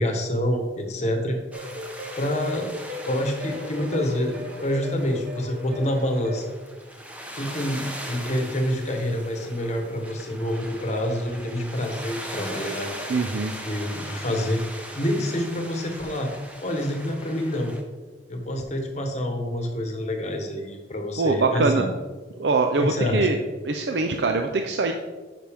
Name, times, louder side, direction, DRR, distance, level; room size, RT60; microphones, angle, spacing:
voice 1, 0.0-1.4 2.2-2.7 3.0-6.5 7.3-12.9 13.6-14.6 14.9-16.3 16.6-17.7 18.3-21.9 22.8-23.3, equal, 40° left, 3 dB, 1.1 m, -27 dB
sound 1, 1.5-17.8, equal, 10° right, 0.8 m, -40 dB
sound 2, 1.5-6.6, left 2 dB, 55° right, 0.9 m, -37 dB
voice 2, 13.1-13.5 21.2-21.9 22.4-23.4 23.6-24.9, right 3 dB, 75° right, 5 dB, 0.5 m, -23 dB
9.5 x 6.0 x 3.5 m, 1.3 s
head